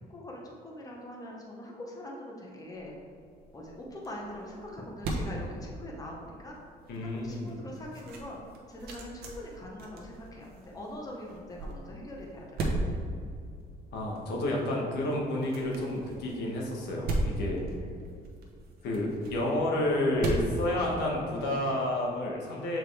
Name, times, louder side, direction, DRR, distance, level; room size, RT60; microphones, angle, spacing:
voice 1, 0.1-2.9 3.5-6.5 7.0-8.4 8.7-12.4 17.8-18.0, left 1 dB, 20° left, -2 dB, 1.0 m, -43 dB
sound 1, 2.7-21.5, right 1 dB, 65° right, 1.1 m, -38 dB
voice 2, 6.9-7.5 13.9-17.6 18.8-22.8, left 1 dB, 75° left, -2 dB, 1.4 m, -30 dB
6.3 x 4.6 x 3.3 m, 2.3 s
cardioid pair, 110°, 17 cm